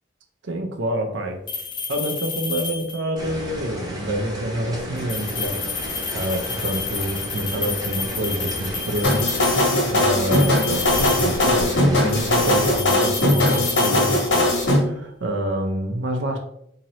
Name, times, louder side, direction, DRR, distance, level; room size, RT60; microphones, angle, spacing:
voice 1, 0.4-1.4 1.9-16.4, right 1 dB, 75° right, 4 dB, 0.5 m, -27 dB
sound 1, 1.5-3.2 5.0-9.7 10.2-11.8 12.1-14.6, left 5 dB, 25° left, 0.4 m, -31 dB
sound 2, 3.2-12.8, equal, 20° right, 0.7 m, -33 dB
sound 3, 9.0-14.8, left 1 dB, 75° left, 1.2 m, -19 dB
4.0 x 2.8 x 2.9 m, 0.75 s
head